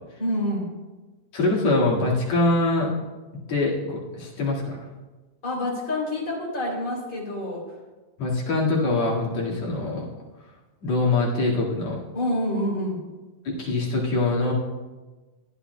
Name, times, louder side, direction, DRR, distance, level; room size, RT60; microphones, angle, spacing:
voice 1, 0.2-0.7 5.4-7.6 12.1-13.0, left 1 dB, 25° left, -5 dB, 3.0 m, -27 dB
voice 2, 1.3-2.9 3.5-4.8 8.2-10.1 10.8-12.0 13.4-14.5, left 2 dB, 55° left, -5 dB, 2.9 m, -23 dB
16.0 x 10.0 x 2.2 m, 1.2 s
omnidirectional pair, 4.0 m